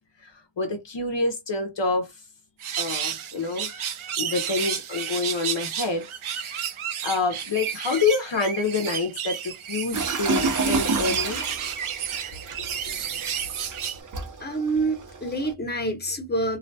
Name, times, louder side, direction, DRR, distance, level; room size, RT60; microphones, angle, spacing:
voice 1, 0.6-2.1 2.7-3.8 4.2-6.1 6.3-6.7 7.0-11.4 12.6-12.9, left 4 dB, 60° left, 0.7 m, -27 dB
sound 1, 2.6-14.0, right 8 dB, 85° right, 0.6 m, -31 dB
sound 2, 9.9-15.5, right 4 dB, 40° right, 0.6 m, -30 dB
voice 2, 12.9-13.3 14.4-16.6, right 2 dB, 20° left, 0.9 m, -28 dB
2.4 x 2.1 x 2.6 m
wide cardioid pair, 50°, 48 cm